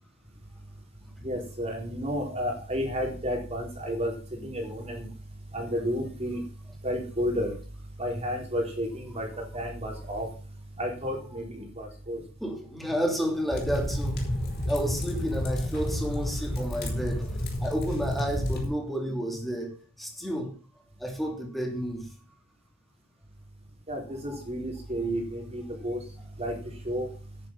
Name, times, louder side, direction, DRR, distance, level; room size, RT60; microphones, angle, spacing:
voice 1, 1.2-4.1 4.4-5.1 5.5-6.4 6.8-7.5 8.0-10.3 10.8-12.2 23.9-26.0 26.4-27.1, equal, 30° right, 4.0 m, -31 dB
voice 2, 12.4-14.3 14.7-20.5 21.0-22.1 24.3-24.4, equal, ahead, 2.9 m, -31 dB
sound 1, 13.5-18.7, left 1 dB, 50° left, 4.3 m, -30 dB
9.9 x 9.4 x 5.9 m
head